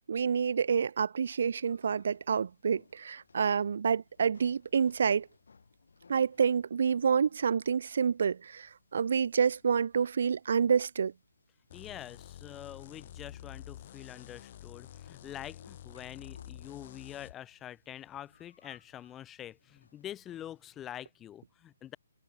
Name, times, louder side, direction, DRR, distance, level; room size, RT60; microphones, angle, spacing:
voice 1, 0.1-5.3 6.1-11.1, right 6 dB, 60° right, 0.3 m, -28 dB
sound 1, 1.3-20.7, left 5 dB, 80° left, 5.4 m, -65 dB
sound 2, 11.7-17.3, left 11 dB, 35° left, 2.9 m, -49 dB
voice 2, 11.7-22.0, left 11 dB, 10° left, 0.4 m, -46 dB
hypercardioid pair, 165°, 0 cm